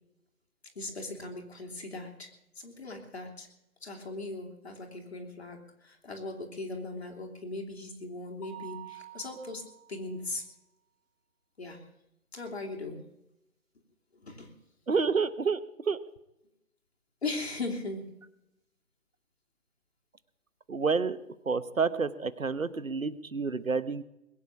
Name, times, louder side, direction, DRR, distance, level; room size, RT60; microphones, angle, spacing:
voice 1, 0.7-3.5 3.8-10.5 11.6-11.8 12.3-13.0 14.2-14.5 17.2-18.2, left 2 dB, 45° left, 1 dB, 3.1 m, -39 dB
Mallet percussion, 8.4-10.2, right 10 dB, 10° left, 1.7 m, -48 dB
voice 2, 14.9-15.6 15.9-16.0 20.7-21.2 21.4-24.0, right 5 dB, 65° right, 15 dB, 1.2 m, -29 dB
21.5 x 8.7 x 7.3 m, 0.85 s
figure-of-eight pair, 160°, 44 cm